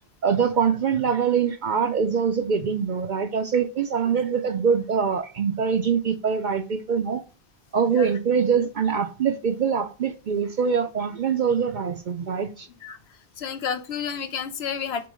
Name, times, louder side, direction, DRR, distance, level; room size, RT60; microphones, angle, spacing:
voice 1, 0.2-7.2 7.7-12.7, right 6 dB, 55° right, 0.6 m, -24 dB
voice 2, 13.4-15.1, left 7 dB, 70° left, 0.9 m, -30 dB
6.9 x 3.0 x 4.9 m
omnidirectional pair, 1.1 m